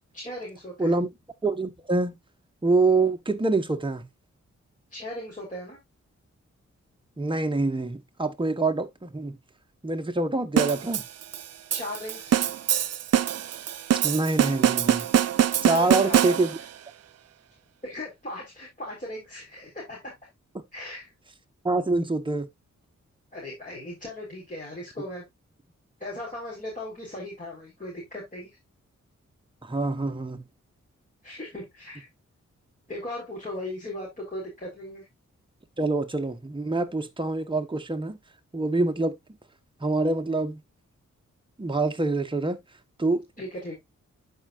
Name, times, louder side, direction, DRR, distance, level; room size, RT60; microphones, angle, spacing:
voice 1, 0.1-1.0 4.9-5.8 11.7-12.4 15.7-16.4 17.8-20.1 20.7-21.1 23.3-25.2 26.0-28.5 31.2-32.1 32.9-35.1 43.4-43.8, left 1 dB, 25° left, 4.1 m, -37 dB
voice 2, 1.4-2.2 2.6-4.0 7.2-9.3 9.8-11.0 14.0-15.1 15.6-16.5 21.6-22.5 29.6-30.4 35.8-38.2 38.5-39.2 39.8-40.6 41.6-42.6 43.0-43.2, right 3 dB, 15° right, 1.1 m, -25 dB
sound 1, 10.6-16.8, right 10 dB, 60° right, 0.5 m, -24 dB
11.5 x 4.7 x 2.4 m
cardioid pair, 55°, 30 cm